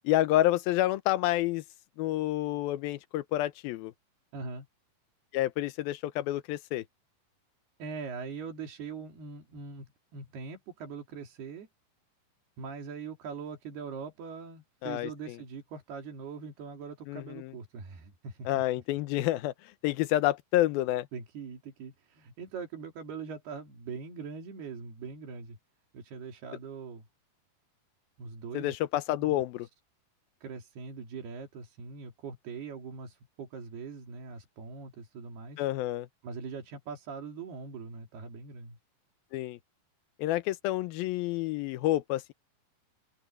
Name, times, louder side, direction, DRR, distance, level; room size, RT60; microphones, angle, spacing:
voice 1, 0.0-1.6 2.0-3.9 5.3-6.8 14.8-15.4 17.1-17.5 18.5-19.5 19.8-21.1 28.5-29.7 35.6-36.1 39.3-39.6 40.2-42.3, left 15 dB, 75° left, 2.6 m, -29 dB
voice 2, 4.3-4.7 7.8-11.7 12.6-18.6 21.1-25.6 25.9-27.1 28.2-28.8 29.2-29.4 30.4-35.6 36.2-38.8, right 5 dB, 90° right, 5.3 m, -42 dB
open air
omnidirectional pair, 4.4 m